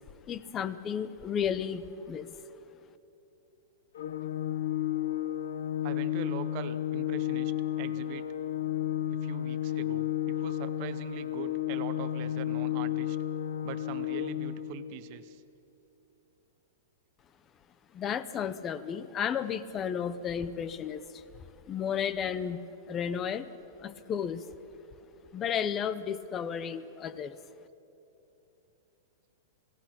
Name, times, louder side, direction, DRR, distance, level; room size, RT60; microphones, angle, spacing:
voice 1, 0.3-2.4 17.9-21.2 21.7-22.6 22.9-23.5 23.8-24.4 25.3-27.4, left 8 dB, 20° left, 15 dB, 0.6 m, -33 dB
Organ, 4.0-14.9, left 11 dB, 70° left, 0.8 m, -32 dB
voice 2, 5.8-8.3 9.1-13.2 13.6-15.4, right 11 dB, 35° right, 12 dB, 0.9 m, -42 dB
27.5 x 17.0 x 6.1 m, 2.9 s
supercardioid pair, 170°, 0 cm